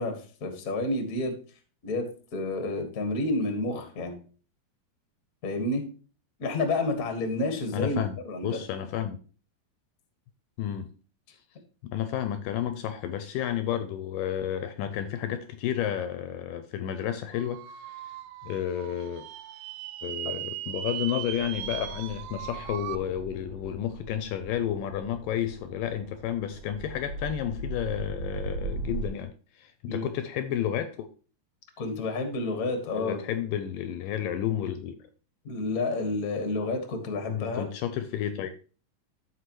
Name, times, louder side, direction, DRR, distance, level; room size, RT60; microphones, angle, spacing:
voice 1, 0.0-1.3 1.8-2.1 2.3-4.2 5.4-5.9 6.4-8.6 29.8-30.1 31.8-33.2 35.4-37.7, left 2 dB, 50° left, 1.0 m, -30 dB
voice 2, 7.7-8.1 8.4-9.2 10.6-10.9 11.8-18.1 18.4-19.3 20.0-31.1 32.9-34.9 37.3-38.5, left 10 dB, 80° left, 2.1 m, -31 dB
sound 1, 17.3-23.0, right 13 dB, 85° right, 2.5 m, -38 dB
sound 2, 21.3-29.1, right 3 dB, 70° right, 1.5 m, -39 dB
14.5 x 4.9 x 3.0 m
omnidirectional pair, 4.3 m